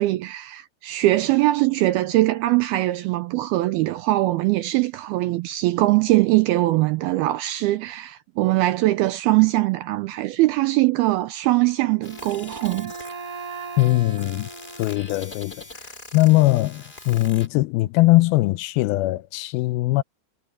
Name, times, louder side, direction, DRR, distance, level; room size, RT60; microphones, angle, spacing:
voice 1, 0.0-12.9, right 17 dB, 85° right, 2.3 m, -21 dB
Wind instrument woodwind instrument, 11.8-15.7, right 5 dB, 50° right, 1.7 m, -39 dB
sound 1, 12.0-17.5, left 2 dB, 15° left, 3.0 m, -42 dB
voice 2, 13.8-14.5 14.8-20.0, left 19 dB, 85° left, 2.1 m, -21 dB
omnidirectional pair, 4.9 m